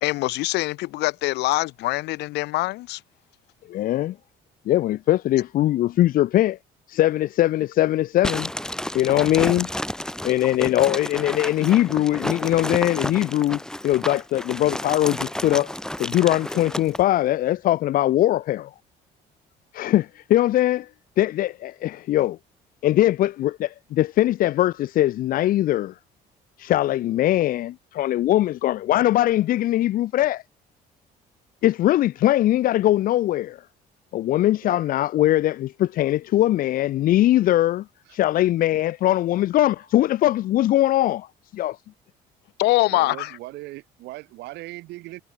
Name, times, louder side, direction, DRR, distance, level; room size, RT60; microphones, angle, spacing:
voice 1, 0.0-3.0 42.6-43.4, left 19 dB, 85° left, 1.1 m, -24 dB
voice 2, 3.7-4.2 4.7-6.6 6.9-8.5 8.9-9.7 10.2-15.7 16.0-18.7 19.7-20.9 21.2-22.4 22.8-25.9 26.6-30.4 31.6-33.6 34.1-41.3 41.5-41.8, left 14 dB, 55° left, 0.5 m, -21 dB
sound 1, 8.2-17.0, left 1 dB, 5° left, 2.3 m, -31 dB
voice 3, 42.9-45.2, right 19 dB, 85° right, 7.3 m, -39 dB
cardioid pair, 110°, 17 cm